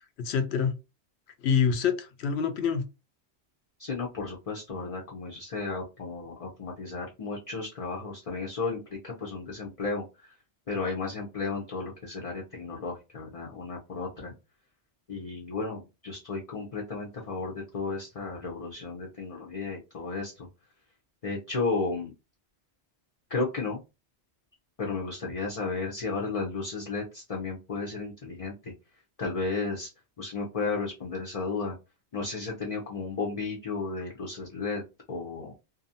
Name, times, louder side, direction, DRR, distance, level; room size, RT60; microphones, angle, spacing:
voice 1, 0.2-0.8 1.4-2.9, left 7 dB, 70° left, 0.8 m, -26 dB
voice 2, 3.8-10.0 10.7-14.3 15.1-20.5 21.2-22.1 23.3-23.8 24.8-28.7 29.2-29.9 30.2-31.7 32.1-34.8 35.1-35.5, left 4 dB, 40° left, 0.6 m, -33 dB
2.6 x 2.3 x 2.6 m
omnidirectional pair, 1.2 m